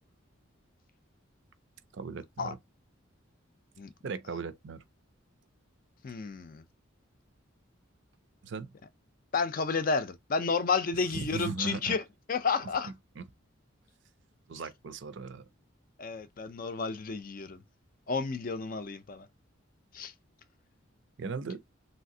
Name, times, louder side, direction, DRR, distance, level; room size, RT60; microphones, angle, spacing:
voice 1, 1.9-2.6 4.0-4.8 8.4-8.7 11.1-12.0 12.8-13.2 14.5-15.4 21.2-21.6, right 4 dB, 60° right, 0.4 m, -38 dB
voice 2, 6.0-6.6 9.3-12.0 12.3-12.9 16.0-17.6 18.1-19.3 19.9-20.1, left 4 dB, 40° left, 0.4 m, -31 dB
3.3 x 2.8 x 2.7 m
head